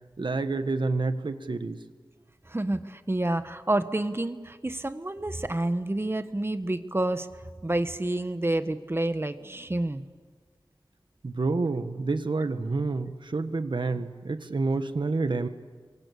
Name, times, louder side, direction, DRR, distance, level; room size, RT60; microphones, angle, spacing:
voice 1, 0.2-1.8 11.2-15.5, right 3 dB, 70° right, 9 dB, 1.6 m, -28 dB
voice 2, 2.5-7.3 7.6-10.0, right 1 dB, 30° right, 10 dB, 1.3 m, -29 dB
29.0 x 24.0 x 8.5 m, 1.5 s
wide cardioid pair, 60°, 8 cm